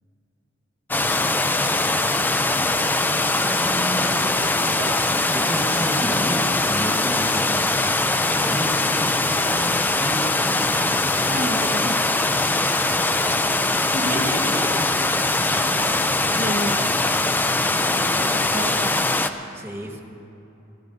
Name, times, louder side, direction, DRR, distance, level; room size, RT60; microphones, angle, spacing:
sound 1, 0.9-19.3, left 2 dB, 10° left, 0.5 m, -21 dB
voice 1, 3.4-4.9 11.3-12.2 13.9-14.8 15.4-15.7 16.3-16.9 17.9-19.1, right 1 dB, 45° right, 2 dB, 1.4 m, -31 dB
voice 2, 5.0-7.8 8.4-10.9 12.5-13.6 19.5-20.0, equal, 15° right, 1 dB, 1.4 m, -33 dB
26.5 x 16.0 x 2.7 m, 2.8 s
head